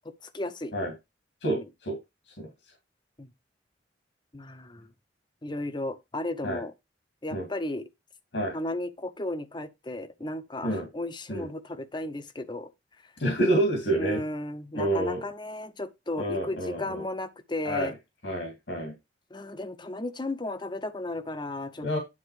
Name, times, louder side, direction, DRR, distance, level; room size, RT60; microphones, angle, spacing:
voice 1, 0.2-0.7 1.5-1.6 3.2-3.3 4.3-4.9 5.4-6.7 7.2-7.8 8.5-12.7 14.0-17.9 19.3-21.9, left 1 dB, 25° left, 0.8 m, -34 dB
voice 2, 1.4-2.0 2.4-2.5 6.4-6.6 7.3-7.4 8.3-8.6 10.6-10.9 11.3-11.5 13.2-14.2 14.8-15.2 16.2-17.0 17.6-17.9 18.2-18.9 21.8-22.0, right 1 dB, 80° left, 2.4 m, -28 dB
9.8 x 3.8 x 4.8 m
head